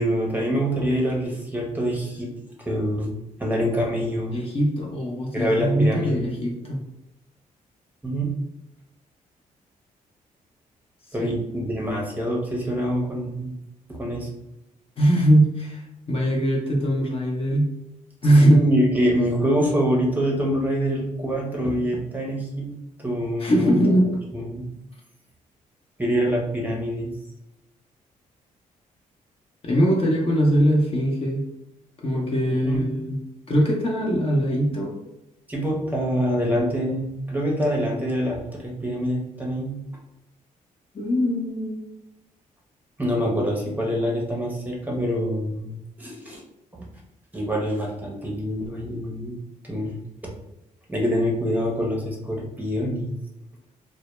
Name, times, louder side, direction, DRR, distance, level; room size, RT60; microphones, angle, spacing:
voice 1, 0.0-2.3 2.7-4.4 5.3-6.3 8.0-8.3 11.1-13.5 14.0-14.3 18.4-22.7 23.0-23.8 24.3-24.7 26.0-27.1 32.5-32.9 35.5-39.8 43.0-46.4 46.7-46.9 47.3-49.4 49.6-50.0 50.2-50.3 50.9-53.2, equal, 10° right, -2 dB, 0.7 m, -25 dB
voice 2, 4.3-6.8 11.2-11.4 15.0-15.8 16.1-17.7 18.2-18.6 23.4-24.1 29.6-31.5 32.0-33.2 33.5-34.9 40.9-41.8, equal, 40° left, -2 dB, 0.7 m, -21 dB
2.1 x 2.1 x 3.0 m, 0.90 s
cardioid pair, 80°, 15 cm